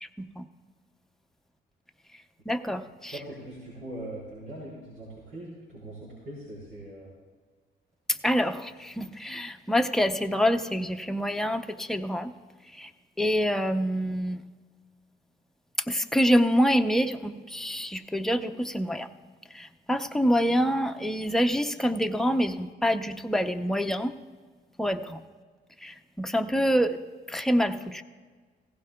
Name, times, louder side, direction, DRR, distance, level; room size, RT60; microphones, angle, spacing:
voice 1, 0.0-0.4 2.5-3.2 8.1-12.3 12.7-12.9 13.2-14.4 15.9-19.1 19.5-24.1 24.8-25.2 25.8-27.0 27.3-28.0, equal, ahead, 6 dB, 0.7 m, -26 dB
voice 2, 3.1-7.1, right 1 dB, 90° right, -8 dB, 4.4 m, -41 dB
16.5 x 15.5 x 2.3 m, 1.4 s
cardioid pair, 90°, 20 cm